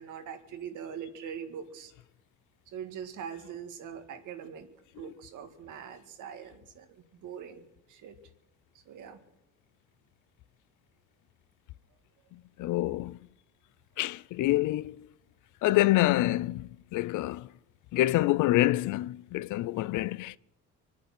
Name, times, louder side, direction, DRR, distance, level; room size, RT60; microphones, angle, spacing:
voice 1, 0.0-1.9 2.7-4.7 5.0-7.6 7.9-8.2 8.9-9.2, right 8 dB, 85° right, 1.8 m, -42 dB
voice 2, 12.6-13.2 14.0-15.0 15.6-17.5 17.9-20.4, left 16 dB, 85° left, 0.5 m, -26 dB
24.0 x 8.5 x 6.0 m
cardioid pair, 90°, 30 cm